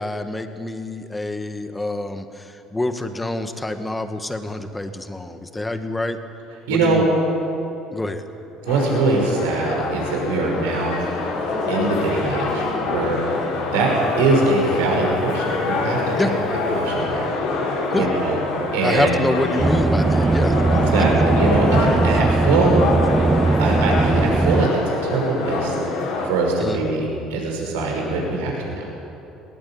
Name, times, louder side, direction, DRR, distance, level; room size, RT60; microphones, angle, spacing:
voice 1, 0.0-6.2 6.7-7.1 7.9-8.3 16.2-16.3 17.9-18.1 18.8-20.6 26.6-26.8, left 2 dB, 15° left, 8 dB, 2.1 m, -26 dB
voice 2, 6.7-7.0 8.6-11.0 11.7-13.2 13.6-13.9 14.2-16.3 16.7-17.2 17.9-18.4 18.7-19.1 20.7-22.7 23.6-25.8 26.2-28.9, right 3 dB, 80° right, -1 dB, 5.8 m, -22 dB
sound 1, 8.7-26.3, left 3 dB, 75° left, 5.6 m, -25 dB
sound 2, 19.6-24.7, right 3 dB, 20° right, 0.4 m, -19 dB
20.0 x 19.0 x 8.8 m, 2.9 s
hypercardioid pair, 65°, 0 cm